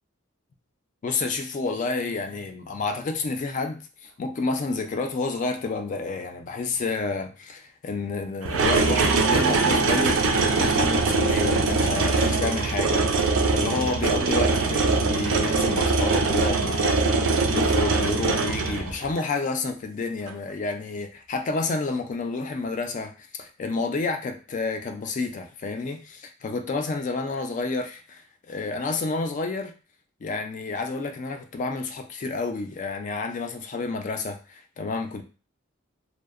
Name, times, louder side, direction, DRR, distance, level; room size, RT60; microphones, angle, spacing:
voice 1, 1.0-10.2 10.5-13.1 13.5-28.2 28.5-29.7 30.2-35.2, left 3 dB, 40° left, 6 dB, 0.3 m, -30 dB
sound 1, 8.4-19.2 20.3-20.4, right 3 dB, 75° right, 0.4 m, -22 dB
2.7 x 2.0 x 2.3 m, 0.35 s
head